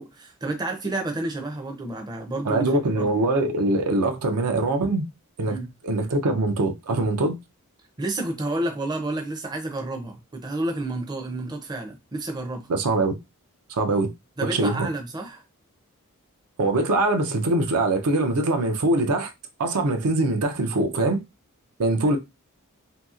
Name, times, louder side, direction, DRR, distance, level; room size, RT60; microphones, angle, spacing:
voice 1, 0.0-2.7 3.0-3.1 5.5-5.7 8.0-12.7 14.4-15.4 22.1-22.2, right 2 dB, 20° right, 0.5 m, -30 dB
voice 2, 2.5-5.1 5.4-5.6 5.8-7.4 12.7-13.2 13.7-14.1 14.4-14.9 16.6-19.3 19.6-21.2 21.8-22.2, right 2 dB, 80° right, 0.5 m, -23 dB
2.8 x 2.7 x 2.3 m
head